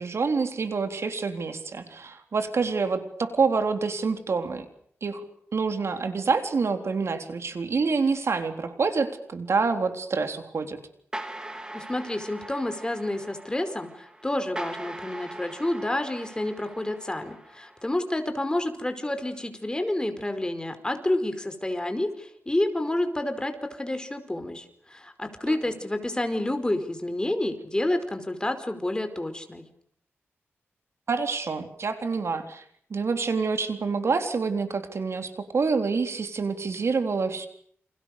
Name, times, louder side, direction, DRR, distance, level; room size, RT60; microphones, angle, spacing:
voice 1, 0.0-4.7 5.0-5.2 5.5-10.8 25.5-25.6 31.1-32.6 32.9-37.5, right 4 dB, 65° right, 7 dB, 3.9 m, -27 dB
sound 1, 11.1-18.0, right 1 dB, 15° right, 3.9 m, -41 dB
voice 2, 11.7-29.6, left 1 dB, 15° left, 8 dB, 4.9 m, -29 dB
29.5 x 28.0 x 6.8 m, 0.64 s
wide cardioid pair, 80°, 5 cm